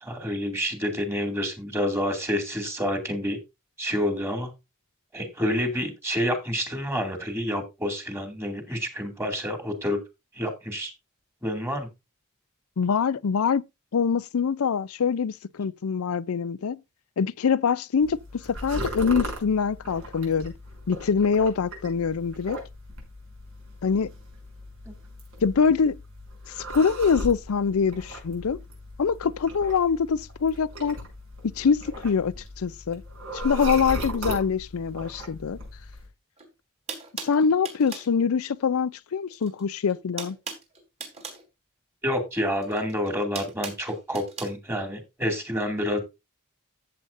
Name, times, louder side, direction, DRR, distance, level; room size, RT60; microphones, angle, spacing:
voice 1, 0.0-3.4 3.8-4.5 5.1-10.0 10.3-10.9 11.4-11.9 24.9-25.0 42.0-46.0, equal, 10° right, 2.4 m, -28 dB
voice 2, 12.8-13.6 13.9-16.8 17.2-20.5 20.9-22.6 23.8-24.1 25.4-26.0 26.7-28.6 29.0-31.0 31.4-33.0 33.3-35.6 37.2-40.4, left 6 dB, 85° left, 0.5 m, -24 dB
sound 1, 18.0-36.1, equal, 70° right, 6.1 m, -38 dB
sound 2, 36.4-36.5 36.9-38.1 39.3-39.6 39.9-41.4 42.6-44.5, right 4 dB, 30° right, 3.1 m, -38 dB
14.0 x 7.8 x 2.6 m
head